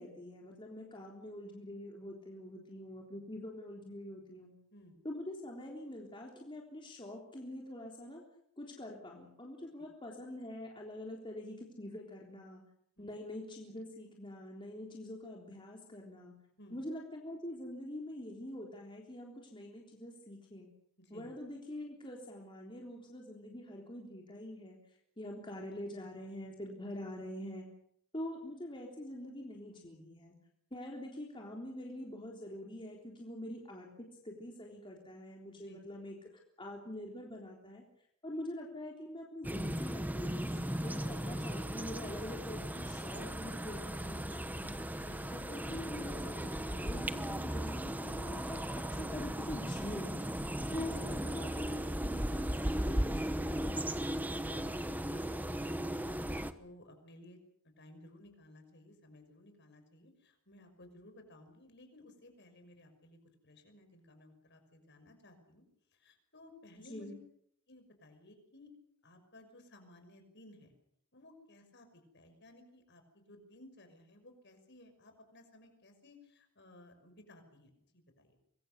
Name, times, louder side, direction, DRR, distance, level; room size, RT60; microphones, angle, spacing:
voice 1, 0.0-4.6 5.0-8.2 8.6-12.6 13.0-16.3 16.7-20.7 21.1-24.8 25.2-27.7 28.1-30.4 30.7-36.3 36.6-37.8 38.2-44.8 45.3-50.1 50.7-53.8 66.8-67.2, left 1 dB, 25° left, -1 dB, 3.6 m, -45 dB
voice 2, 21.0-21.3 35.6-35.8 44.9-45.2 54.3-57.4 57.6-63.2 63.4-65.6 65.9-67.2 67.7-68.7 69.0-70.7 71.1-78.4, left 1 dB, 55° left, 6 dB, 6.1 m, -58 dB
sound 1, 39.4-56.5, right 1 dB, 10° right, 1.1 m, -37 dB
25.5 x 22.5 x 6.8 m, 0.69 s
head